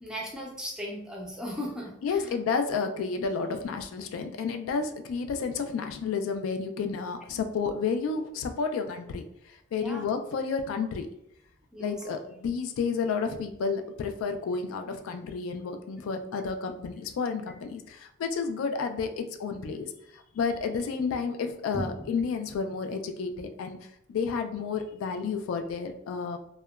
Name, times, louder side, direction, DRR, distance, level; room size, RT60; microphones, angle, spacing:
voice 1, 0.0-2.3 7.3-7.5 9.7-10.1 11.7-12.0 21.7-21.8, equal, 5° right, -2 dB, 0.4 m, -37 dB
voice 2, 2.0-11.1 11.8-23.8 24.1-26.4, left 5 dB, 80° left, 7 dB, 0.3 m, -31 dB
2.8 x 2.1 x 2.3 m, 0.78 s
head